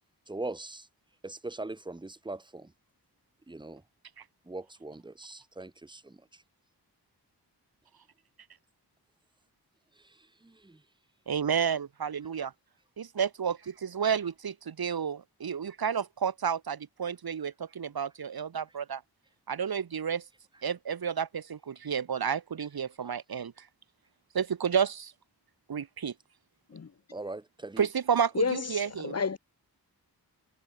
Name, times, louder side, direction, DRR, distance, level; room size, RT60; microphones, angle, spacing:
voice 1, 0.3-0.8 1.2-2.0 2.3-2.4 3.5-3.8 4.5-5.7 27.1-27.8, right 2 dB, 10° right, 1.0 m, -39 dB
voice 2, 11.3-12.5 13.0-19.0 19.5-20.2 20.6-23.5 24.3-25.1 25.7-26.1 27.8-29.2, right 7 dB, 65° right, 1.4 m, -31 dB
voice 3, 28.3-29.4, left 5 dB, 40° left, 0.9 m, -31 dB
wide cardioid pair, 120°, 39 cm